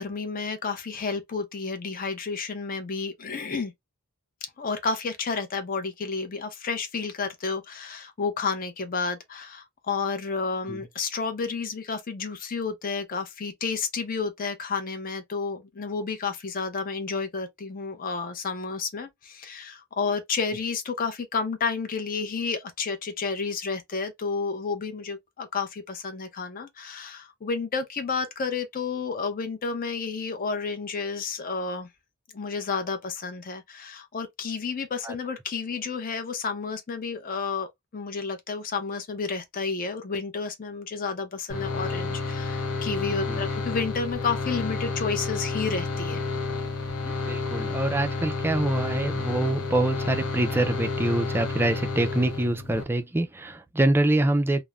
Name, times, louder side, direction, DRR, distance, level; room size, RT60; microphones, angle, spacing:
voice 1, 0.0-3.7 4.6-31.9 32.3-37.7 37.9-46.2, left 4 dB, 40° left, 0.5 m, -31 dB
sound 1, 41.5-52.8, left 4 dB, 80° left, 0.7 m, -30 dB
voice 2, 47.3-54.6, right 1 dB, 10° right, 0.3 m, -25 dB
2.4 x 2.0 x 3.0 m
head